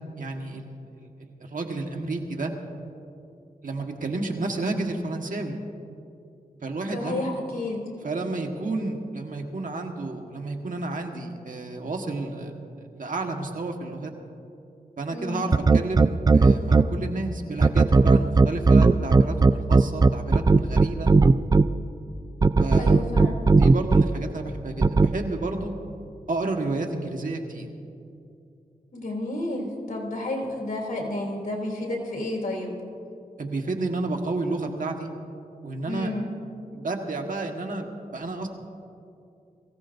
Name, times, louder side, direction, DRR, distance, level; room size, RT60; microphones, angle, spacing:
voice 1, 0.2-2.5 3.6-5.6 6.6-7.3 8.0-14.1 15.0-21.1 22.6-23.1 23.6-25.7 26.3-27.7 33.4-35.1 35.6-36.1 36.7-38.5, right 2 dB, 65° right, 3 dB, 1.5 m, -31 dB
voice 2, 6.9-7.8 15.1-15.4 22.8-23.4 28.9-32.8 35.9-36.3, left 1 dB, 65° left, -1 dB, 3.0 m, -31 dB
sound 1, 15.5-16.8 17.6-21.6 22.4-24.0 24.8-25.1, right 3 dB, 25° right, 0.4 m, -15 dB
22.5 x 15.5 x 2.6 m, 2.6 s
cardioid pair, 65°, 15 cm